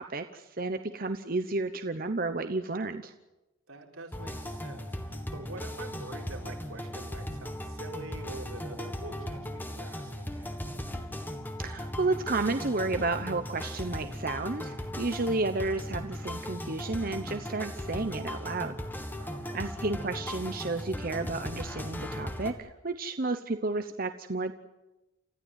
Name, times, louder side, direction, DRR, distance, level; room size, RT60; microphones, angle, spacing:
voice 1, 0.0-3.1 11.6-18.7 19.5-24.5, right 3 dB, 45° right, 8 dB, 0.9 m, -32 dB
voice 2, 3.7-10.5 19.1-19.7, right 2 dB, 85° right, 1 dB, 4.5 m, -45 dB
sound 1, 4.1-22.5, equal, 10° left, 1.6 m, -38 dB
30.0 x 14.5 x 9.2 m, 1.0 s
head